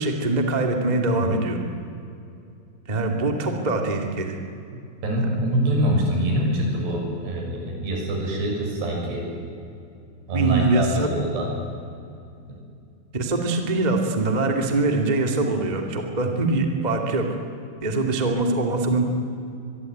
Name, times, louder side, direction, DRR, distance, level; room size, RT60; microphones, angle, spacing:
voice 1, 0.0-1.6 2.9-4.4 10.3-11.1 13.1-17.2 17.8-19.1, right 2 dB, 15° right, 3 dB, 1.5 m, -23 dB
voice 2, 5.0-9.3 10.3-11.5 12.5-12.6, right 1 dB, 75° right, 0 dB, 8.2 m, -25 dB
25.0 x 22.0 x 9.3 m, 2.5 s
omnidirectional pair, 4.9 m